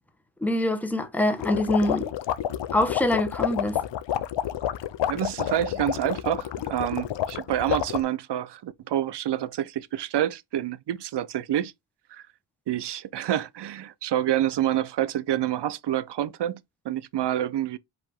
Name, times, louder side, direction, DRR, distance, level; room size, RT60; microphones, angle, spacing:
voice 1, 0.4-2.1 2.7-3.8, left 1 dB, 5° left, 1.0 m, -24 dB
sound 1, 1.4-8.0, left 11 dB, 65° left, 0.6 m, -29 dB
voice 2, 5.1-11.7 12.1-12.2 12.7-17.8, right 11 dB, 65° right, 0.6 m, -28 dB
5.1 x 2.8 x 3.5 m
cardioid pair, 70°, 46 cm